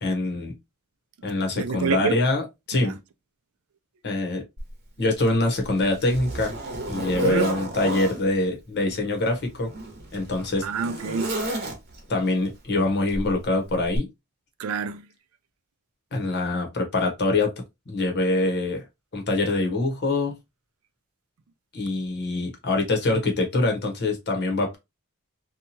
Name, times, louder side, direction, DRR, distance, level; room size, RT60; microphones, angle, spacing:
voice 1, 0.0-0.5 1.2-2.9 4.0-4.4 5.0-6.5 6.9-9.7 10.1-10.7 12.1-14.1 16.1-17.5 17.9-18.8 19.1-20.4 21.7-24.8, left 2 dB, 50° left, 0.9 m, -24 dB
voice 2, 1.6-2.2 2.7-2.9 7.2-7.5 10.6-11.4 14.6-15.1, right 5 dB, 65° right, 0.4 m, -28 dB
Zipper (clothing), 4.6-4.7 5.3-8.2 9.2-12.1 13.1-13.3 13.9-14.0, right 1 dB, 45° right, 0.9 m, -32 dB
2.8 x 2.2 x 2.8 m
head